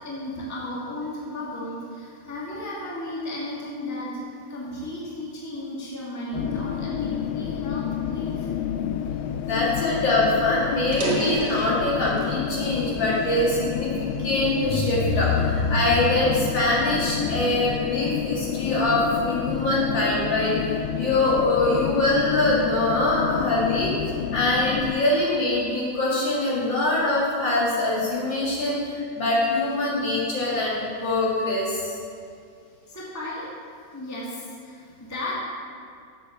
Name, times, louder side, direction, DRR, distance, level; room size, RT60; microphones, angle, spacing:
voice 1, 0.0-8.5 32.9-33.5 33.9-35.3, left 1 dB, 10° left, -6 dB, 1.6 m, -34 dB
sound 1, 6.3-24.9, left 9 dB, 80° left, 1.3 m, -29 dB
voice 2, 9.4-13.9 14.2-23.9 24.3-32.0, left 2 dB, 60° left, -7 dB, 2.9 m, -23 dB
sound 2, 10.8-12.4 12.9-14.2 14.8-15.0 15.7-17.7, right 3 dB, 50° right, 2.2 m, -32 dB
7.2 x 7.2 x 7.1 m, 2.3 s
omnidirectional pair, 2.3 m